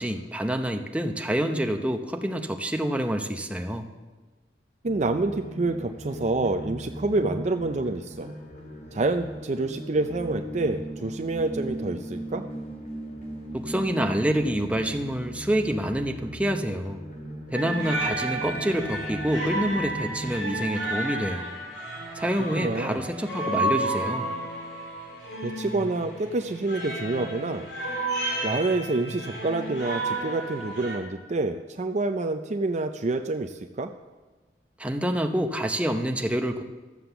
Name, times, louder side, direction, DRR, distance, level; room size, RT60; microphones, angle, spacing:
voice 1, 0.0-3.9 13.5-17.0 17.5-21.5 22.1-24.3 34.8-36.6, equal, 10° right, 4 dB, 0.8 m, -27 dB
sound 1, 4.8-20.3, right 1 dB, 50° left, 2.3 m, -38 dB
voice 2, 4.8-8.3 8.9-12.4 22.6-23.1 25.4-27.7 28.4-33.9, right 2 dB, 40° right, 6 dB, 0.5 m, -27 dB
sound 2, 17.5-31.0, right 2 dB, 90° left, 3.1 m, -32 dB
13.5 x 7.8 x 6.9 m, 1.3 s
head